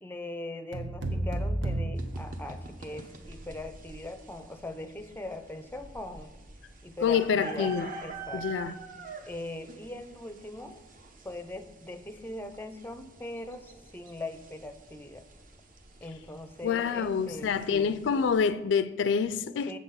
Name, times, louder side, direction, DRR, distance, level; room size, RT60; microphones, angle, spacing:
voice 1, 0.0-6.3 6.8-8.5 9.3-10.8 11.2-15.2 16.0-18.0 19.6-19.8, left 1 dB, 10° left, 0.5 m, -41 dB
sound 1, 0.7-3.0, right 1 dB, 80° right, 1.1 m, -32 dB
sound 2, 2.0-18.5, right 3 dB, 45° right, 0.8 m, -47 dB
voice 2, 7.0-7.9 8.3-8.7 16.6-19.8, left 6 dB, 70° left, 0.3 m, -27 dB
7.7 x 5.6 x 5.6 m
head